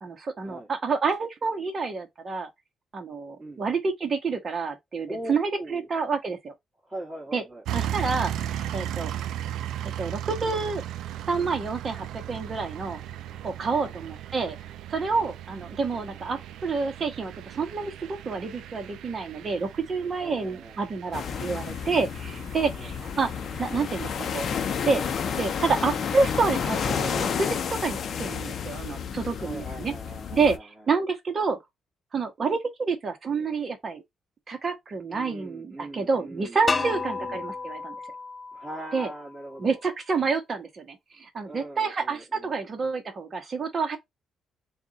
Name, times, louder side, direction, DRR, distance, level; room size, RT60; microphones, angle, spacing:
voice 1, 0.0-2.5 2.9-6.5 7.3-7.4 7.7-9.1 10.0-10.8 11.3-13.0 13.4-14.5 14.9-23.3 23.6-24.5 24.8-25.0 25.4-29.9 30.3-31.6 32.1-34.0 34.5-37.9 38.9-39.1 39.6-44.0, right 4 dB, 40° right, 1.3 m, -28 dB
voice 2, 5.1-5.9 6.8-7.6 13.7-14.0 15.1-15.3 20.2-20.8 22.5-23.1 29.4-30.9 35.1-37.4 38.5-39.8 41.4-42.5, right 1 dB, 20° right, 2.0 m, -41 dB
sound 1, 7.7-26.8, right 11 dB, 80° right, 0.4 m, -37 dB
sound 2, 21.1-30.6, left 7 dB, 55° left, 0.7 m, -31 dB
sound 3, 36.7-39.6, left 4 dB, 35° left, 0.3 m, -32 dB
3.5 x 2.5 x 4.0 m
cardioid pair, 90°, 0 cm